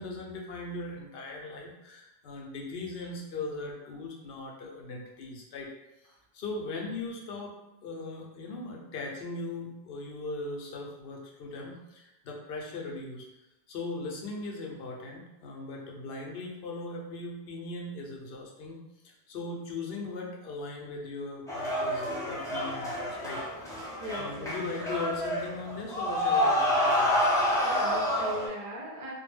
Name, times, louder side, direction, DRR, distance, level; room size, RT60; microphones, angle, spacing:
voice 1, 0.0-5.7 6.0-7.6 7.8-13.3 13.7-23.4 23.7-23.8 24.2-27.5, left 3 dB, 75° left, -1 dB, 0.8 m, -39 dB
sound 1, 21.5-28.5, equal, 5° left, 0.3 m, -28 dB
voice 2, 24.0-24.6 27.6-29.1, left 1 dB, 40° right, -3 dB, 0.6 m, -39 dB
2.2 x 2.1 x 3.2 m, 0.96 s
omnidirectional pair, 1.0 m